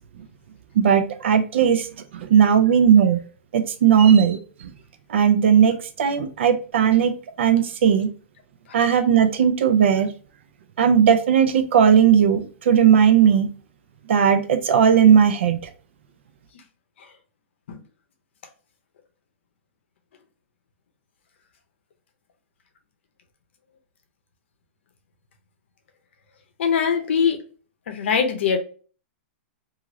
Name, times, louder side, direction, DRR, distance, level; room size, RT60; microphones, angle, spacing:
voice 1, 0.8-1.9 2.1-3.2 3.5-4.4 5.1-8.1 8.7-10.1 10.8-13.5 14.1-15.6, right 8 dB, 65° right, 0.4 m, -17 dB
voice 2, 26.6-27.4 27.9-28.6, left 6 dB, 65° left, 0.6 m, -21 dB
3.0 x 2.4 x 2.5 m
supercardioid pair, 175°, 7 cm